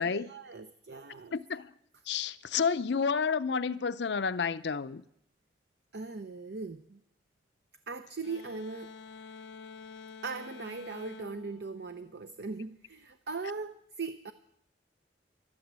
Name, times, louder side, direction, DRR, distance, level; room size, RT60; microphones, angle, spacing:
voice 1, 0.0-1.3 5.9-7.0 7.9-9.0 10.2-14.3, right 4 dB, 65° right, 0.7 m, -39 dB
voice 2, 1.3-1.7 2.1-5.0, left 5 dB, 70° left, 0.6 m, -30 dB
sound 1, 8.2-12.7, left 5 dB, 85° left, 1.0 m, -49 dB
12.5 x 12.5 x 7.5 m
head